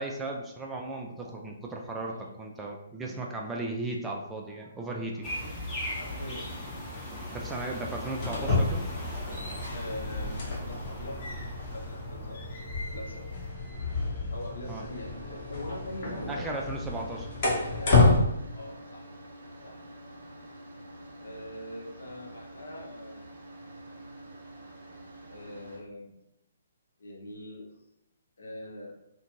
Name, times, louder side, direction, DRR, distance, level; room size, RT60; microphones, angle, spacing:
voice 1, 0.0-5.3 7.3-8.9 14.7-14.9 16.3-17.3, right 2 dB, 10° right, -1 dB, 0.3 m, -36 dB
voice 2, 5.1-5.5 5.9-6.5 9.7-11.2 11.7-12.6 12.9-13.2 14.3-16.4 17.8-19.0 19.6-19.8 21.2-23.2 25.3-26.1 27.0-27.7 28.4-28.9, left 1 dB, 70° left, 0 dB, 0.7 m, -42 dB
sound 1, 5.2-13.5, equal, 15° left, 0.8 m, -39 dB
sound 2, 8.1-18.2, left 3 dB, 45° left, 0.9 m, -29 dB
sound 3, 14.9-25.8, right 1 dB, 65° right, 0.6 m, -47 dB
2.4 x 2.2 x 3.0 m, 0.82 s
figure-of-eight pair, 130°, 0 cm